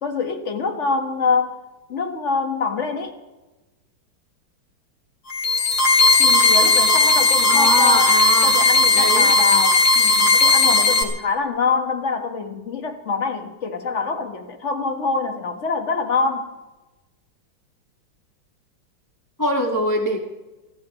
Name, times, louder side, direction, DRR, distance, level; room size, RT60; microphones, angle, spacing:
voice 1, 0.0-1.6 1.9-3.2 6.2-8.2 8.4-16.5, left 4 dB, 35° left, 1.9 m, -25 dB
sound 1, 5.3-11.0, left 2 dB, 85° left, 3.6 m, -16 dB
voice 2, 7.5-8.6 8.9-9.7 19.4-20.2, right 1 dB, 10° left, 1.8 m, -23 dB
29.5 x 14.5 x 3.3 m
omnidirectional pair, 2.2 m